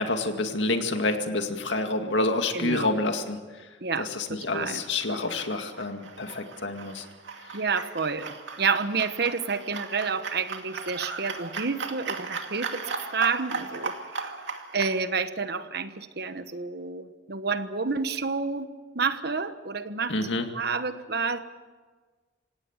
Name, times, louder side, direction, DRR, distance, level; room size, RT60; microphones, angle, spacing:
voice 1, 0.0-3.4 4.0-7.0 20.1-20.5, left 2 dB, 80° left, 5 dB, 2.2 m, -28 dB
voice 2, 2.5-3.0 3.8-4.8 7.5-12.8 13.1-13.9 14.2-14.3 14.7-20.2 20.5-21.4, right 4 dB, 60° right, 11 dB, 1.2 m, -29 dB
sound 1, 4.5-15.0, right 4 dB, 80° right, 2.4 m, -37 dB
27.0 x 17.5 x 7.4 m, 1.4 s
head